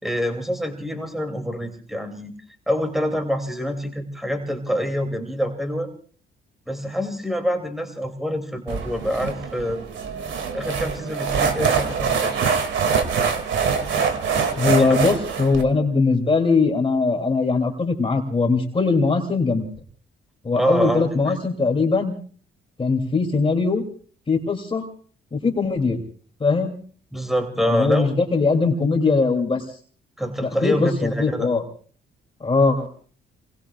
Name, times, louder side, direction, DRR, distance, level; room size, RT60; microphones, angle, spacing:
voice 1, 0.0-2.3 2.7-5.9 6.7-9.8 10.5-12.5 14.8-15.0 20.5-21.4 27.1-28.1 30.2-31.5, equal, ahead, 5 dB, 2.7 m, -26 dB
sound 1, 8.7-15.6, right 6 dB, 70° right, 2.4 m, -24 dB
voice 2, 14.6-19.7 20.4-22.1 22.8-23.8 24.3-24.9 25.3-26.0 26.4-26.7 27.6-29.6 30.4-31.6 32.4-32.9, left 4 dB, 25° left, 2 dB, 2.9 m, -21 dB
28.5 x 21.0 x 2.4 m, 0.43 s
cardioid pair, 90°, 20 cm